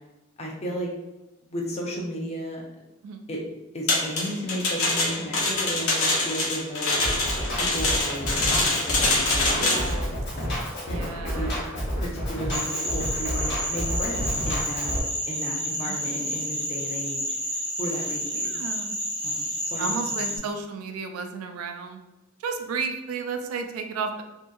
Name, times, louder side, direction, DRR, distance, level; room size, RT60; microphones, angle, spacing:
voice 1, 0.4-0.9 1.5-2.6 3.3-3.4 3.7-7.0 7.6-9.9 10.9-11.5 12.0-13.4 13.7-14.9 15.2-17.4 17.8-18.5 19.2-19.9 20.3-20.5, equal, 30° left, 0 dB, 0.5 m, -34 dB
sound 1, 3.9-9.9, left 2 dB, 80° left, 0.7 m, -24 dB
Drum kit, 7.0-15.0, equal, 50° left, 0.8 m, -30 dB
voice 2, 9.5-10.2 10.8-11.5 15.9-16.1 18.3-19.0 19.8-22.0 22.4-24.2, right 5 dB, 85° right, 6 dB, 0.3 m, -33 dB
sound 2, 12.5-20.4, equal, 25° right, 0.5 m, -30 dB
2.7 x 2.6 x 2.3 m, 1.0 s
head